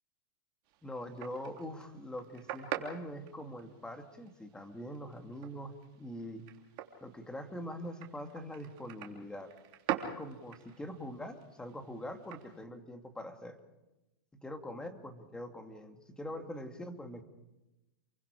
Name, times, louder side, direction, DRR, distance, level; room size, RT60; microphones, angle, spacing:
sound 1, 0.6-12.6, right 11 dB, 45° right, 3.3 m, -45 dB
voice 1, 0.8-6.5 7.0-9.5 10.0-13.6 14.4-17.2, equal, 5° left, 5 dB, 2.4 m, -43 dB
28.5 x 23.5 x 5.0 m, 1.0 s
hypercardioid pair, 130°, 12 cm